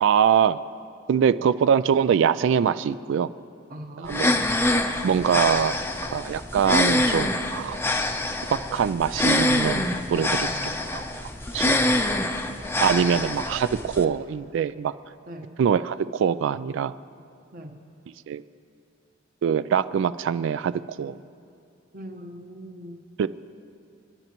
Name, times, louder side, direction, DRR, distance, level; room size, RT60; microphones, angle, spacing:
voice 1, 0.0-0.6 1.1-3.3 4.0-4.3 5.0-5.8 6.1-7.8 8.5-10.5 10.9-11.3 11.5-11.8 12.8-14.9 15.6-16.9 18.3-18.4 19.4-20.7 21.0-21.2 23.2-23.3, right 7 dB, 65° right, 15 dB, 0.3 m, -23 dB
voice 2, 3.7-4.6 10.4-10.8 15.3-15.5 17.5-17.8 21.9-23.0, equal, 45° right, 4 dB, 1.2 m, -41 dB
sound 1, 4.1-14.0, left 1 dB, 10° left, 0.6 m, -25 dB
29.0 x 10.5 x 3.0 m, 2.5 s
head